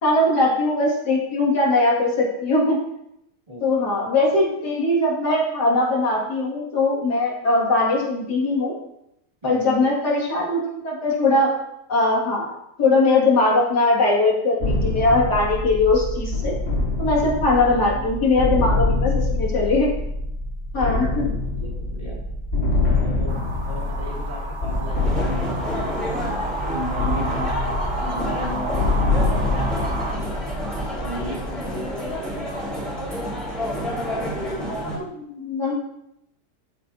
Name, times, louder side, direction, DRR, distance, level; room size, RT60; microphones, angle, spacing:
voice 1, 0.0-2.8 3.6-8.7 9.4-11.5 11.9-12.5 12.8-16.5 17.0-19.9 20.7-21.3 34.7-35.9, left 2 dB, 80° left, -2 dB, 2.8 m, -20 dB
voice 2, 3.5-4.1 9.4-9.7 17.4-18.1 20.7-22.2 23.0-23.4 23.7-30.3 30.9-32.5 33.5-34.8, left 1 dB, 20° right, -4 dB, 2.3 m, -36 dB
sound 1, 14.6-32.3, left 2 dB, 40° left, 2.3 m, -25 dB
sound 2, 23.3-30.2, right 2 dB, 65° right, 2.0 m, -32 dB
sound 3, 24.9-35.0, equal, ahead, 4.2 m, -29 dB
13.5 x 8.3 x 2.7 m, 0.80 s
omnidirectional pair, 1.7 m